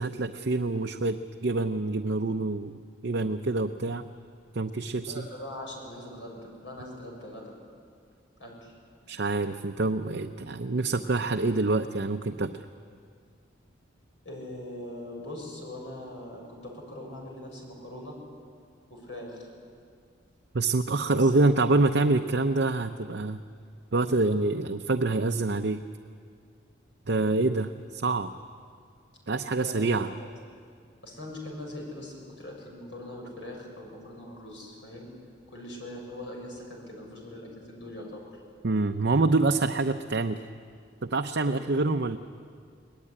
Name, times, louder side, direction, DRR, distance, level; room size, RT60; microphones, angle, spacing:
voice 1, 0.0-4.1 4.5-5.2 9.1-12.5 20.5-23.4 23.9-25.8 27.1-28.3 29.3-30.1 38.6-40.4 41.0-42.2, right 3 dB, 60° right, 5 dB, 0.7 m, -26 dB
voice 2, 5.0-7.5 8.4-8.7 14.2-18.1 18.9-19.5 21.1-21.7 29.6-29.9 30.2-30.3 31.0-35.1 35.5-38.4 41.4-41.6, left 1 dB, 70° left, 0 dB, 6.9 m, -41 dB
24.0 x 19.5 x 9.9 m, 2.2 s
head